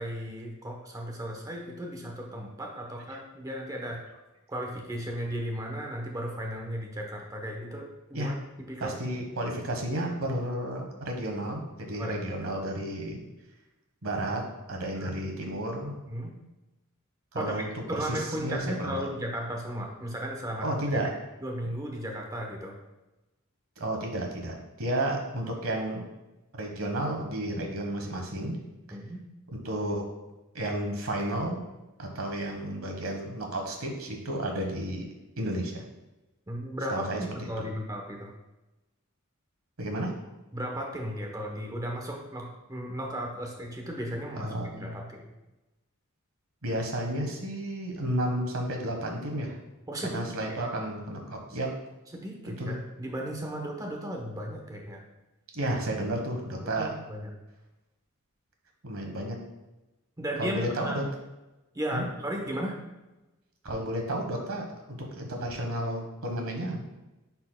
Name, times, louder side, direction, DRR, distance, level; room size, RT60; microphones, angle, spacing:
voice 1, 0.0-4.0 4.5-9.0 11.9-12.2 14.9-15.2 16.1-16.3 17.3-17.6 17.9-21.0 21.4-22.8 28.9-29.2 36.5-38.3 40.5-45.3 49.9-50.2 52.1-55.0 56.8-57.3 60.2-61.0 61.7-62.8, equal, 15° right, 1 dB, 0.9 m, -35 dB
voice 2, 8.8-13.2 14.0-14.4 14.7-16.0 17.3-17.7 18.0-18.9 20.6-21.1 23.8-26.0 26.5-28.6 29.6-30.0 30.5-31.6 32.0-35.1 35.4-35.8 36.9-37.2 37.6-37.7 39.8-40.1 44.4-45.1 46.6-49.6 50.0-51.7 52.6-52.8 55.5-56.9 58.8-59.4 60.4-61.0 61.9-62.1 63.6-64.6 65.1-66.8, right 1 dB, 70° right, 2 dB, 1.3 m, -32 dB
9.9 x 4.4 x 2.2 m, 1.0 s
head